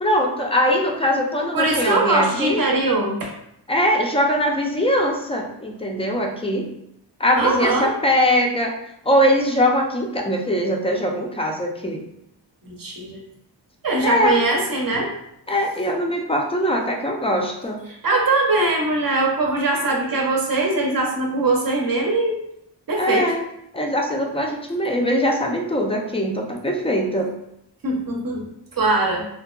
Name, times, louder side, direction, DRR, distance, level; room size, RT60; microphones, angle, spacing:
voice 1, 0.0-2.6 3.7-6.7 7.2-8.7 9.1-12.1 14.0-14.4 15.5-17.8 23.0-23.4 23.7-27.3, equal, 15° left, 1 dB, 0.4 m, -21 dB
voice 2, 1.5-3.3 7.4-7.9 12.6-13.2 13.8-15.1 17.9-22.4 22.9-23.3 27.8-29.3, right 2 dB, 50° right, 0 dB, 0.6 m, -21 dB
2.7 x 2.2 x 2.3 m, 0.78 s
wide cardioid pair, 70°, 43 cm